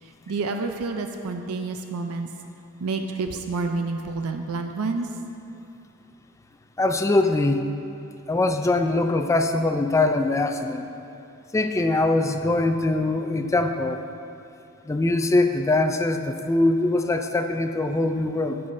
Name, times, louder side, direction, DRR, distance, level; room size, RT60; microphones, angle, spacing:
voice 1, 0.0-2.3 2.8-5.2, right 3 dB, 80° right, 5 dB, 0.5 m, -29 dB
voice 2, 6.8-7.7 8.3-10.9 11.5-14.0 14.9-18.6, left 2 dB, 15° left, 6 dB, 0.3 m, -22 dB
15.0 x 6.8 x 2.6 m, 2.8 s
head